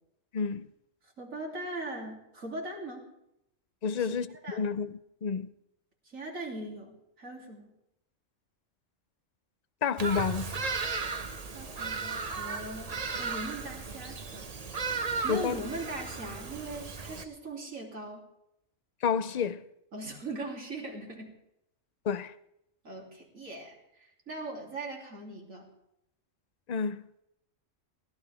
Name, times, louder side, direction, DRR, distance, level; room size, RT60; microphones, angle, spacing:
voice 1, 0.3-0.7 3.8-4.9 5.2-5.5 9.8-10.5 15.3-15.6 19.0-19.6 22.1-22.3 26.7-27.0, left 6 dB, 45° left, 0.6 m, -30 dB
voice 2, 1.0-3.1 4.0-4.1 4.4-4.6 6.1-7.7 11.5-14.5 15.0-18.2 19.9-21.4 22.8-25.7, right 2 dB, 90° right, 3.7 m, -40 dB
Bird vocalization bird call bird song, 10.0-17.2, right 4 dB, 35° right, 0.9 m, -35 dB
23.5 x 17.5 x 3.5 m
omnidirectional pair, 1.3 m